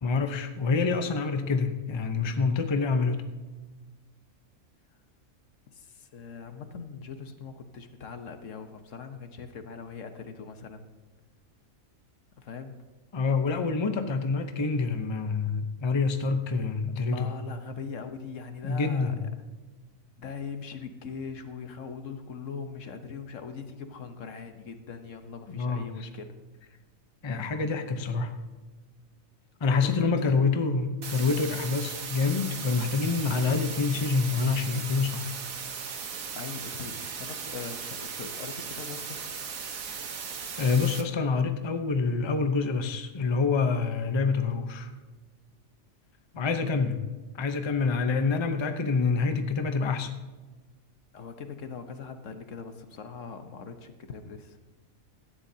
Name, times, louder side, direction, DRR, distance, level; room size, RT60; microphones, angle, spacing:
voice 1, 0.0-3.2 13.1-17.3 18.6-19.1 25.6-25.9 27.2-28.4 29.6-35.3 40.6-44.9 46.4-47.0 47.4-50.1, left 4 dB, 25° left, 7 dB, 0.7 m, -27 dB
voice 2, 5.7-10.9 12.4-12.7 17.1-19.2 20.2-26.4 29.6-30.4 36.3-39.2 46.3-46.7 51.1-54.6, left 5 dB, 70° left, 7 dB, 1.3 m, -41 dB
sound 1, 31.0-41.0, right 6 dB, 90° right, 1.5 m, -37 dB
17.5 x 13.0 x 2.8 m, 1.2 s
omnidirectional pair, 1.4 m